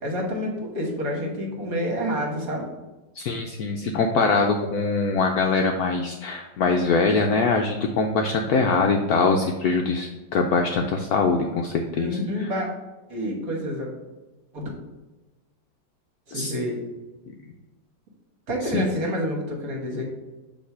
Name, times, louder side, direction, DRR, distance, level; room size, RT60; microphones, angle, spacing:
voice 1, 0.0-2.7 11.9-12.7 13.1-13.9 14.5-14.7 16.3-16.8 18.5-20.0, equal, 50° right, 0 dB, 1.6 m, -28 dB
voice 2, 3.2-12.5 16.3-16.5 18.7-18.9, left 4 dB, 75° left, 3 dB, 0.9 m, -23 dB
6.5 x 3.2 x 5.5 m, 1.1 s
omnidirectional pair, 2.1 m